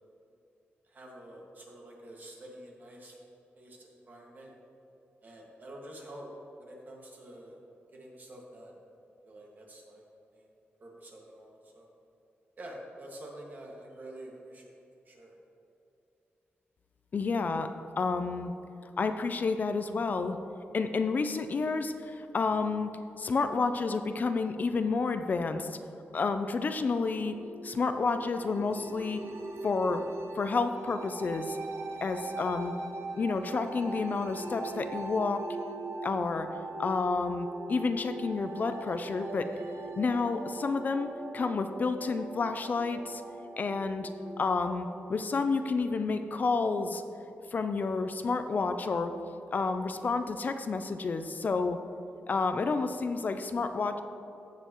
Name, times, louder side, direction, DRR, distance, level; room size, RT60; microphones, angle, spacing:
voice 1, 0.8-3.2 3.6-4.5 5.2-6.3 6.6-7.6 7.9-8.8 9.2-10.0 10.3-10.5 10.8-11.9 12.6-14.7 15.1-15.3, right 1 dB, 45° right, -2 dB, 1.8 m, -48 dB
voice 2, 17.1-18.5 19.0-20.4 20.7-22.9 23.2-25.8 26.1-27.4 27.6-29.2 29.6-30.0 30.4-31.6 32.0-32.7 33.2-35.4 36.0-36.5 36.8-39.5 40.0-43.2 43.6-44.1 44.4-47.0 47.5-49.1 49.5-51.8 52.3-54.0, left 4 dB, 45° left, 8 dB, 0.4 m, -30 dB
sound 1, 27.1-45.1, right 2 dB, 80° right, 0.8 m, -41 dB
15.0 x 6.8 x 3.0 m, 2.8 s
wide cardioid pair, 135°, 4 cm